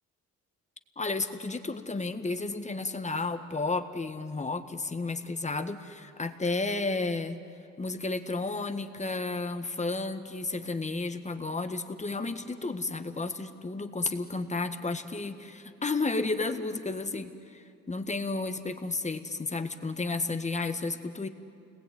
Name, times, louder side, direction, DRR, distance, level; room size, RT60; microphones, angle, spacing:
voice 1, 1.0-7.4 7.8-21.3, left 3 dB, 25° left, 8 dB, 1.6 m, -32 dB
29.0 x 21.0 x 9.5 m, 2.5 s
cardioid pair, 90°, 30 cm